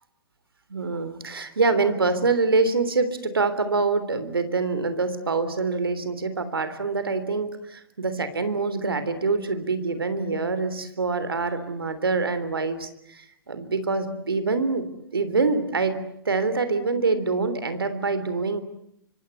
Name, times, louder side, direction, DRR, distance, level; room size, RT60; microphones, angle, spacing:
voice 1, 0.7-18.6, right 4 dB, 90° right, 11 dB, 3.4 m, -25 dB
25.5 x 24.5 x 8.3 m, 0.76 s
hypercardioid pair, 120°, 12 cm